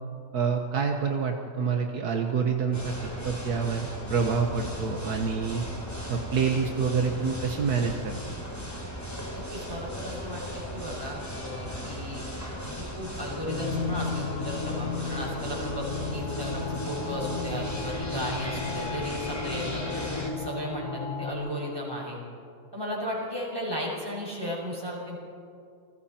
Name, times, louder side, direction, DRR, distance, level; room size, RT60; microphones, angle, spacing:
voice 1, 0.3-2.9 3.2-5.6 6.1-8.3, right 5 dB, 75° right, 3 dB, 1.7 m, -27 dB
sound 1, 2.7-20.3, left 1 dB, 10° left, 3.4 m, -37 dB
voice 2, 9.3-12.3 12.6-22.2 22.7-25.2, equal, 15° right, -4 dB, 5.8 m, -35 dB
sound 2, 13.5-21.3, left 4 dB, 55° left, 2.0 m, -34 dB
29.0 x 20.5 x 4.4 m, 2.4 s
omnidirectional pair, 1.7 m